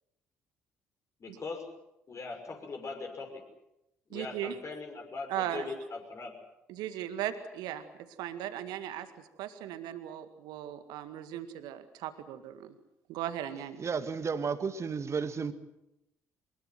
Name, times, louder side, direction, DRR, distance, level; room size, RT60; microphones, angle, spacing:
voice 1, 1.2-1.7 2.1-3.4 4.1-6.3, left 3 dB, 40° left, 3 dB, 6.2 m, -40 dB
voice 2, 4.1-4.6 5.3-5.7 6.7-7.8 8.2-12.7 13.1-13.8, right 11 dB, 65° right, 10 dB, 1.9 m, -37 dB
voice 3, 13.8-15.5, right 5 dB, 40° right, 12 dB, 1.8 m, -32 dB
23.5 x 21.5 x 7.7 m, 0.87 s
figure-of-eight pair, 50°, 8 cm